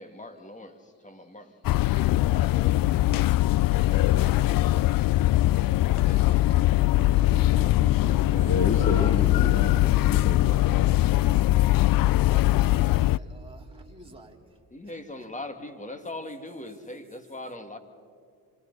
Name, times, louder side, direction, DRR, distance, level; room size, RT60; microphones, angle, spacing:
voice 1, 0.0-3.3 3.7-4.2 5.8-9.1 14.7-17.8, left 1 dB, 15° left, 7 dB, 2.4 m, -42 dB
sound 1, 1.6-13.2, left 16 dB, 55° left, 0.5 m, -21 dB
voice 2, 3.5-5.1 12.1-15.3, right 2 dB, 15° right, -1 dB, 3.9 m, -51 dB
sound 2, 6.5-14.1, right 6 dB, 30° right, 2.2 m, -45 dB
voice 3, 8.4-11.1, left 3 dB, 35° left, 6 dB, 1.9 m, -31 dB
29.5 x 26.0 x 4.2 m, 2.4 s
supercardioid pair, 65°, 42 cm